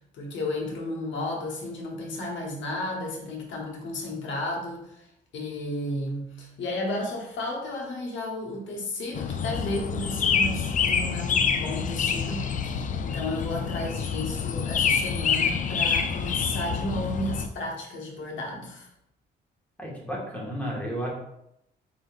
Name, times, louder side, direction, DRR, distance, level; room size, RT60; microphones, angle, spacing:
voice 1, 0.1-5.1 5.3-18.9, left 1 dB, 75° left, 0 dB, 1.1 m, -33 dB
sound 1, 9.1-17.5, left 6 dB, 40° left, 0.4 m, -27 dB
voice 2, 19.8-21.1, equal, 5° left, -3 dB, 1.4 m, -32 dB
4.3 x 3.7 x 2.4 m, 0.80 s
cardioid pair, 90°, 20 cm